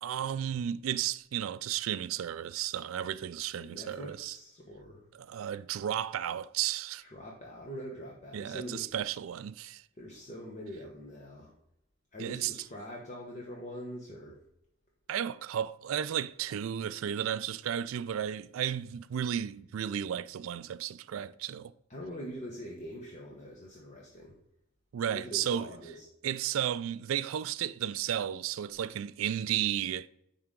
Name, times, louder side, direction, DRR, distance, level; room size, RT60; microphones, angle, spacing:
voice 1, 0.0-4.4 5.1-7.0 8.3-9.8 12.2-12.5 15.1-21.7 24.9-25.7 26.2-30.1, right 10 dB, 85° right, 0.3 m, -33 dB
voice 2, 3.6-5.0 7.0-8.9 10.0-11.5 12.1-14.4 21.9-24.3 25.1-26.0, equal, 35° left, 1.1 m, -43 dB
10.5 x 3.8 x 3.7 m
head